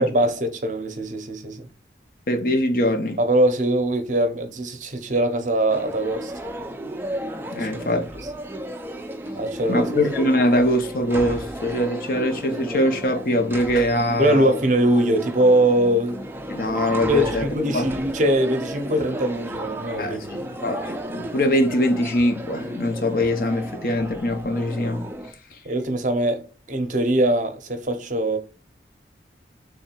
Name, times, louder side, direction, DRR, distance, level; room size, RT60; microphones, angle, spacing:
voice 1, 0.0-1.7 3.2-6.3 7.6-8.0 9.3-9.9 14.2-16.2 16.9-20.2 25.6-28.4, right 1 dB, 45° right, 0.7 m, -22 dB
voice 2, 2.3-3.2 7.5-8.1 9.7-14.5 16.5-17.5 17.7-17.9 20.0-25.0, left 1 dB, 50° left, 0.7 m, -22 dB
sound 1, 5.7-25.3, equal, 10° right, 0.4 m, -33 dB
3.5 x 3.2 x 4.4 m
head